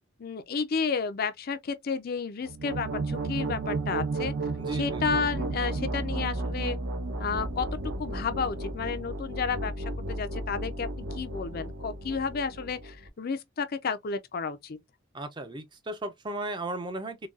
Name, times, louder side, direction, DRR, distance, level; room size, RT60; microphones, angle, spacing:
voice 1, 0.2-4.3 4.7-6.8 7.2-14.8, left 5 dB, 50° left, 0.4 m, -32 dB
sound 1, 2.4-13.1, right 2 dB, 65° right, 0.7 m, -33 dB
voice 2, 4.6-5.0 15.1-17.3, right 1 dB, 20° right, 0.5 m, -35 dB
3.9 x 2.2 x 2.3 m
head